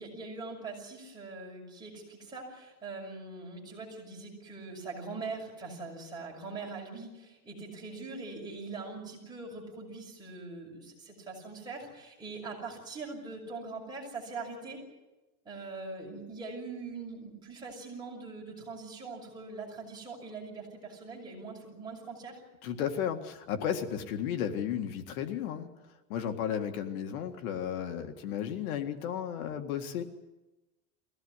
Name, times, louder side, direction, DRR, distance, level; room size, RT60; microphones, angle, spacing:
voice 1, 0.0-14.8 15.4-22.4, right 3 dB, 10° right, -2 dB, 6.9 m, -42 dB
voice 2, 22.6-25.7 26.1-30.0, left 9 dB, 75° left, 7 dB, 2.0 m, -34 dB
23.0 x 17.0 x 9.8 m, 1.0 s
supercardioid pair, 165°, 43 cm